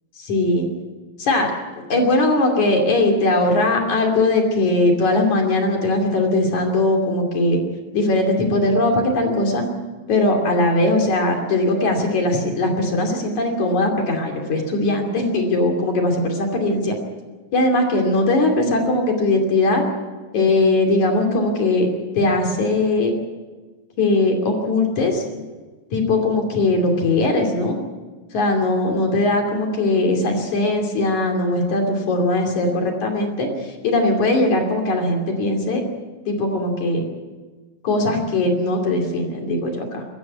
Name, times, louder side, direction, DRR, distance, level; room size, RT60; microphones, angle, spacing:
voice 1, 0.2-0.7 1.2-1.5 1.9-7.6 7.9-9.6 10.1-17.0 17.5-19.8 20.3-21.9 22.2-23.1 24.0-25.2 25.9-27.8 28.3-35.8 36.3-37.0 37.8-40.0, left 2 dB, 55° left, 3 dB, 4.0 m, -20 dB
21.5 x 15.0 x 9.6 m, 1.3 s
omnidirectional pair, 4.0 m